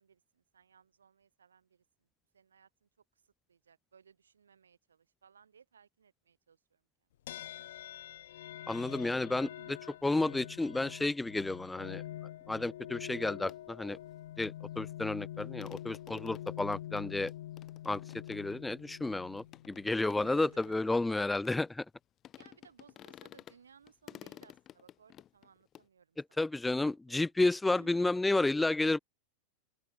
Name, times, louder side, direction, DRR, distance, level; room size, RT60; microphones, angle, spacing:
voice 1, 0.0-6.8 9.3-9.8 19.3-19.8 20.1-20.8 22.4-27.2 27.8-28.0, right 7 dB, 70° right, 7.6 m, -62 dB
sound 1, 7.3-20.8, left 13 dB, 60° left, 3.3 m, -46 dB
voice 2, 8.7-9.5 10.0-12.0 12.5-14.0 14.4-17.3 17.9-18.0 18.3-21.8 26.4-29.0, left 2 dB, 5° left, 0.5 m, -31 dB
sound 2, 13.5-13.6 14.8-14.9 15.1-15.2 15.4-22.0 22.2-23.6 23.8-25.9, left 11 dB, 30° left, 8.0 m, -54 dB
open air
figure-of-eight pair, 90°, 0 cm